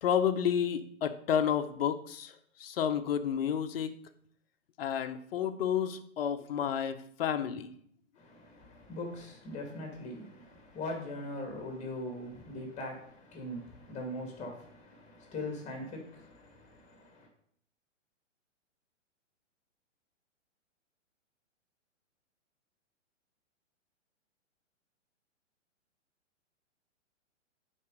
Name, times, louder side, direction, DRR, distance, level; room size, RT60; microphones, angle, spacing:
voice 1, 0.0-3.9 4.8-7.7, left 8 dB, 50° left, 0.7 m, -31 dB
voice 2, 8.2-17.3, left 1 dB, 20° left, 2.0 m, -41 dB
9.5 x 4.2 x 3.8 m
figure-of-eight pair, 120°, 38 cm